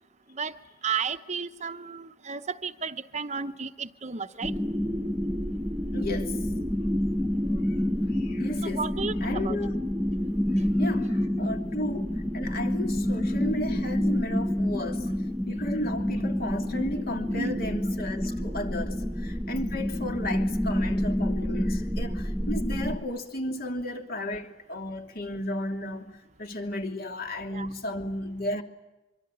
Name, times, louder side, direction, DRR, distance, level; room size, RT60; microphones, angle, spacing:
voice 1, 0.8-4.5 8.6-9.7 17.3-17.7 27.5-27.7, right 5 dB, 35° right, 0.9 m, -33 dB
sound 1, 4.4-23.0, equal, 10° right, 1.2 m, -28 dB
voice 2, 5.9-6.5 7.7-7.8 8.1-8.8 9.2-9.7 10.8-15.1 15.5-28.6, left 1 dB, 50° left, 2.9 m, -34 dB
25.0 x 25.0 x 9.1 m
head